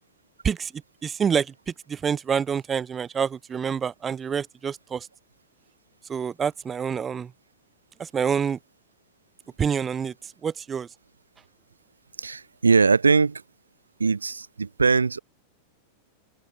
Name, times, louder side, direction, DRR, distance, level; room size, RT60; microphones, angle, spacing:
voice 1, 1.0-1.5 1.9-5.1 6.1-7.3 8.0-8.6 9.6-10.1 10.4-10.9, right 7 dB, 20° right, 1.4 m, -27 dB
voice 2, 12.2-13.4 14.0-15.2, right 4 dB, 75° right, 5.0 m, -21 dB
open air
figure-of-eight pair, 90°, 0 cm